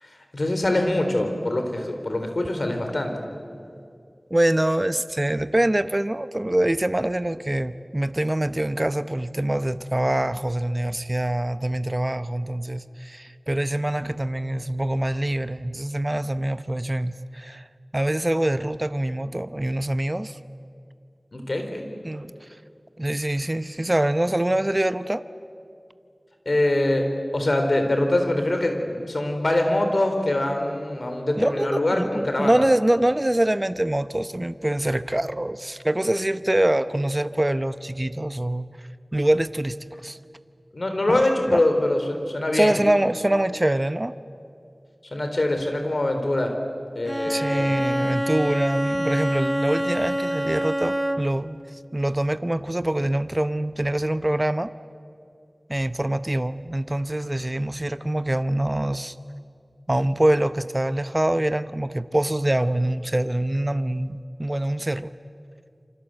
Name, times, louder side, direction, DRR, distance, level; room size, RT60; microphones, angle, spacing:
voice 1, 0.0-3.1 21.3-21.9 26.5-27.1 27.3-32.6 40.7-42.8 45.1-46.5 47.0-47.7, left 1 dB, 60° left, 5 dB, 4.0 m, -24 dB
voice 2, 4.3-17.7 17.9-20.4 22.0-22.3 23.0-25.2 31.4-38.7 39.1-39.8 40.0-40.2 41.1-41.2 41.5-41.6 42.5-44.1 47.3-51.6 51.9-54.7 55.7-59.1 59.9-65.1, right 1 dB, 30° right, 12 dB, 0.8 m, -24 dB
Bowed string instrument, 47.0-51.5, equal, 10° right, 1.4 m, -26 dB
27.5 x 25.5 x 7.8 m, 2.4 s
wide cardioid pair, 45°, 0 cm